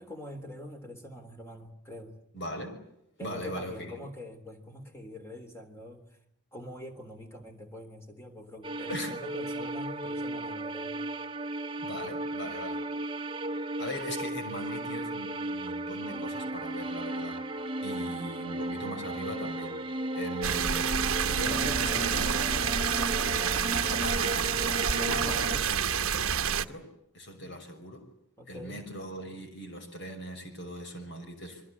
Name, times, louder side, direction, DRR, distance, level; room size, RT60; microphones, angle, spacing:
voice 1, 0.0-2.2 3.2-6.2 6.5-11.0 27.3-27.5 28.4-28.8, left 1 dB, 10° left, 3.5 m, -44 dB
voice 2, 2.3-2.8 3.2-4.0 8.9-9.1 11.8-12.8 13.8-17.4 17.8-19.8 20.1-21.0 21.2-22.7 23.2-24.4 24.9-26.9 27.1-28.1 28.5-31.6, equal, 50° left, 5.9 m, -40 dB
sound 1, 8.6-25.6, right 1 dB, 25° right, 1.2 m, -35 dB
sound 2, 20.4-26.6, right 7 dB, 65° right, 1.1 m, -28 dB
26.0 x 23.5 x 8.4 m
head